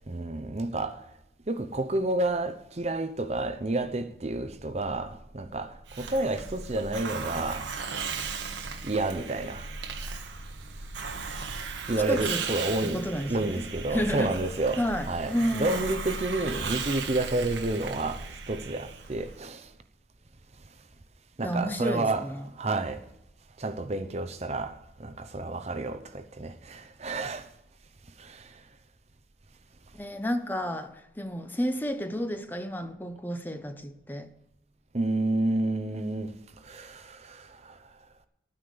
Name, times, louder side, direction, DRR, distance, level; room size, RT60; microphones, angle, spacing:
voice 1, 0.1-1.0 1.5-7.7 8.8-9.7 11.9-19.7 21.4-22.3 22.6-23.0 23.6-27.5 28.2-28.5 34.9-36.3 36.6-37.7, right 2 dB, 35° right, 0.7 m, -30 dB
Hiss, 5.9-19.4, right 5 dB, 80° right, 1.5 m, -36 dB
voice 2, 12.1-12.4 12.8-13.6 13.9-14.3 14.8-15.9 21.4-22.5 29.9-34.3, equal, 10° left, 0.8 m, -31 dB
13.0 x 9.6 x 6.8 m
head